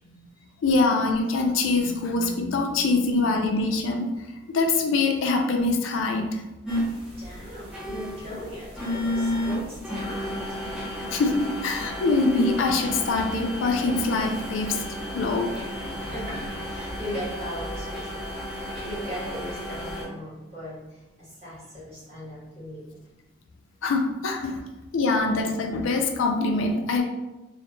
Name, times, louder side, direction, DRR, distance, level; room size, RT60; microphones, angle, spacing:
voice 1, 0.6-4.1 4.5-6.4 11.0-14.8 15.1-15.6 23.8-24.6 24.9-27.0, left 3 dB, 75° left, 3 dB, 0.3 m, -24 dB
sound 1, 6.6-20.0, equal, 5° right, 0.5 m, -32 dB
voice 2, 7.2-10.4 16.0-18.2 18.8-20.8 21.2-22.8, equal, 30° right, -8 dB, 0.9 m, -38 dB
2.1 x 2.0 x 2.9 m, 1.0 s
head